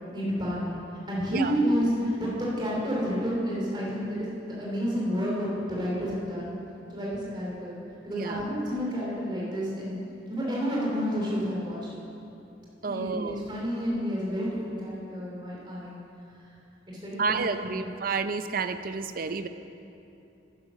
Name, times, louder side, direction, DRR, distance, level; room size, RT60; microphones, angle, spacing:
voice 1, 0.1-0.8 1.1-6.5 6.9-7.8 8.0-10.0 10.3-11.8 12.8-15.9 16.4-16.5 16.9-17.4 17.7-17.8, equal, 25° right, -5 dB, 2.9 m, -30 dB
voice 2, 12.8-13.4 17.2-19.5, right 4 dB, 45° right, 10 dB, 0.5 m, -30 dB
11.0 x 9.5 x 6.3 m, 2.8 s
head